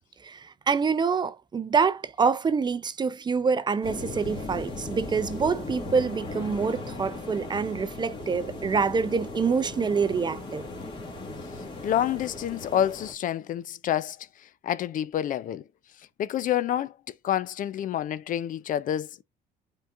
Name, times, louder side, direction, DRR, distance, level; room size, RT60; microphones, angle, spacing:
voice 1, 0.2-10.6, right 5 dB, 25° right, 0.5 m, -26 dB
sound 1, 3.8-13.1, left 2 dB, 30° left, 2.1 m, -37 dB
voice 2, 11.8-14.2 14.6-15.6 16.2-19.2, left 10 dB, 55° left, 0.5 m, -28 dB
11.0 x 3.8 x 2.4 m
cardioid pair, 110°, 17 cm